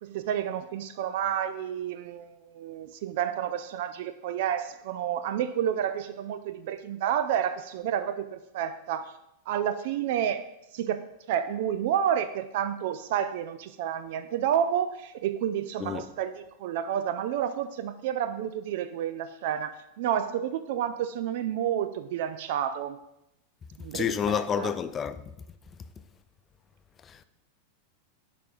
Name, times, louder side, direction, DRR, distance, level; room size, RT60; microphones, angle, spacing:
voice 1, 0.0-9.1 9.5-10.5 10.7-23.0 23.8-24.7, right 9 dB, 50° right, 0.3 m, -30 dB
voice 2, 23.9-25.2 27.1-27.2, left 8 dB, 25° left, 0.4 m, -29 dB
11.0 x 5.0 x 2.6 m
figure-of-eight pair, 90°, 0 cm